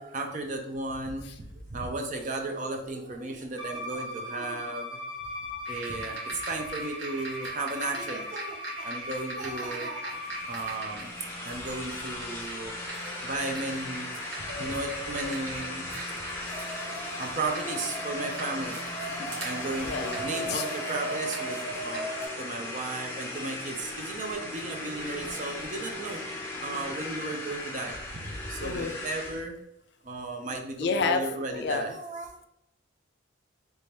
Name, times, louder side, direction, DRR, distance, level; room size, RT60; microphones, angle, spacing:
voice 1, 0.0-5.0 5.7-10.2 10.5-11.1 11.4-12.8 13.2-14.1 14.6-15.9 17.2-22.1 22.4-29.6 30.0-32.4, right 2 dB, 40° right, 4 dB, 0.5 m, -35 dB
Bowed string instrument, 3.6-10.9, left 1 dB, 25° right, 0.8 m, -39 dB
sound 1, 5.6-22.3, right 2 dB, 80° right, 1.1 m, -39 dB
sound 2, 10.1-29.4, left 2 dB, 10° left, 0.6 m, -37 dB
voice 2, 19.8-20.6 28.6-29.0 30.8-31.2 31.5-31.9, left 5 dB, 55° left, 7 dB, 0.3 m, -29 dB
3.3 x 2.8 x 3.2 m, 0.78 s
head